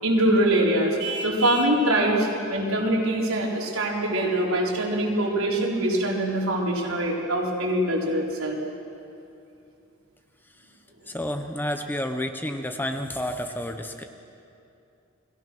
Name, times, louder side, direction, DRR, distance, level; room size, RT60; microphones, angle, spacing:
voice 1, 0.0-1.0 1.2-8.6, right 1 dB, 80° right, -2 dB, 4.5 m, -23 dB
Vehicle horn car horn honking, 1.0-1.8, right 3 dB, 55° right, 2.0 m, -32 dB
voice 2, 11.0-14.0, left 1 dB, 10° left, 6 dB, 1.0 m, -30 dB
30.0 x 21.0 x 6.2 m, 2.6 s
head